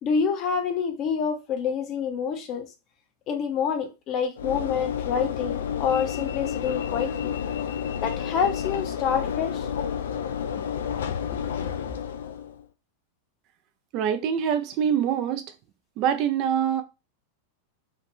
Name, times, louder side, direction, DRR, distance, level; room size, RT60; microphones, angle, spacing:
voice 1, 0.0-2.7 3.3-7.3 8.0-9.7 11.0-11.4, left 6 dB, 35° left, 0.7 m, -27 dB
Train / Engine / Alarm, 4.4-12.6, left 8 dB, 60° left, 0.4 m, -30 dB
voice 2, 13.9-15.4 16.0-16.8, right 8 dB, 40° right, 0.4 m, -24 dB
3.2 x 2.4 x 3.0 m
figure-of-eight pair, 90°, 0 cm